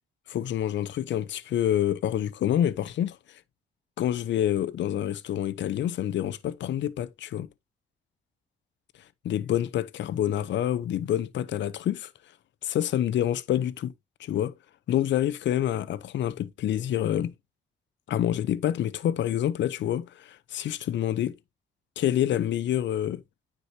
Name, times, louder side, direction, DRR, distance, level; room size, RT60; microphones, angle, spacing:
voice 1, 0.3-3.2 4.0-7.5 9.2-12.1 12.6-13.9 14.2-14.5 14.9-17.3 18.1-21.3 22.0-23.2, left 11 dB, 65° left, 0.7 m, -27 dB
9.5 x 4.9 x 2.8 m
cardioid pair, 90°, 20 cm